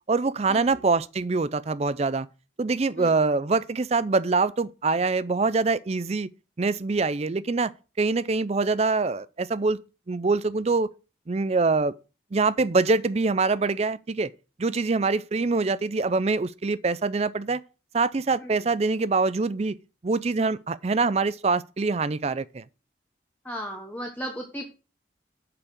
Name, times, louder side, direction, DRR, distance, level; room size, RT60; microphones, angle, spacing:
voice 1, 0.1-2.3 2.6-6.3 6.6-7.7 8.0-9.8 10.1-10.9 11.3-11.9 12.3-14.3 14.6-17.6 17.9-19.8 20.0-22.6, right 3 dB, 35° right, 0.4 m, -24 dB
voice 2, 23.4-24.7, equal, 10° left, 1.1 m, -36 dB
8.6 x 4.8 x 6.3 m
head